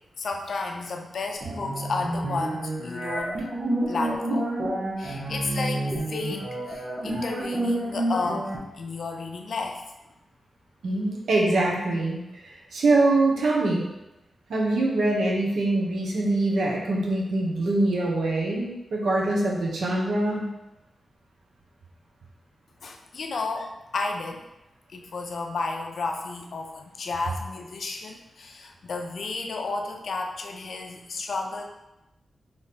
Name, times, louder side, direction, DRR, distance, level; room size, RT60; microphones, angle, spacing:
voice 1, 0.2-3.5 3.9-4.5 5.0-9.8 22.8-24.4 24.9-31.6, left 3 dB, 60° left, 3 dB, 0.5 m, -32 dB
sound 1, 1.4-8.6, right 1 dB, 50° right, 0.8 m, -29 dB
voice 2, 10.8-13.8 14.5-20.5, right 2 dB, 85° right, -3 dB, 1.0 m, -24 dB
3.5 x 3.0 x 4.1 m, 0.97 s
wide cardioid pair, 160°, 0 cm